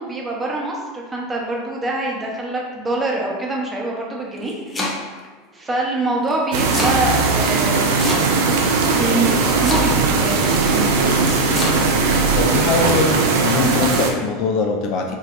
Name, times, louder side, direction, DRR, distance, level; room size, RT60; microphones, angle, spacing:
voice 1, 0.0-4.5 5.5-8.4 8.9-11.0 13.6-13.8, right 2 dB, 20° right, -2 dB, 0.8 m, -25 dB
Domestic sounds home sounds, 4.2-5.3 6.3-7.0 8.0-8.6 9.5-10.2 11.3-11.8, left 2 dB, 20° left, 0.7 m, -27 dB
sound 1, 6.5-14.1, right 4 dB, 65° right, 0.4 m, -18 dB
voice 2, 12.4-15.2, left 4 dB, 50° left, 2 dB, 0.4 m, -22 dB
3.6 x 2.7 x 2.5 m, 1.3 s
figure-of-eight pair, 80°, 0 cm